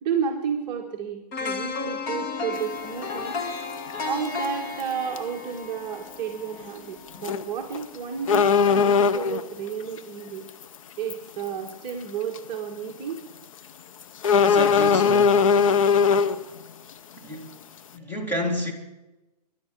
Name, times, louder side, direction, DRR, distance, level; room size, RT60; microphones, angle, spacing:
voice 1, 0.0-3.4 4.0-10.5 11.0-13.2, right 7 dB, 20° right, 1.6 m, -31 dB
sound 1, 1.3-7.3 7.7-7.8, left 4 dB, 25° left, 1.7 m, -34 dB
sound 2, 2.6-2.7 4.3-4.5 4.8-4.9 5.2-5.3 7.2-7.4 7.7-7.8 8.3-9.5 10.5-10.6 11.1-11.2 11.7-11.9 12.4-12.5 14.2-16.4, left 6 dB, 50° left, 0.9 m, -19 dB
voice 2, 14.3-15.5 17.1-17.6 17.9-18.7, equal, 10° left, 2.3 m, -30 dB
23.0 x 11.5 x 4.7 m
hypercardioid pair, 155°, 21 cm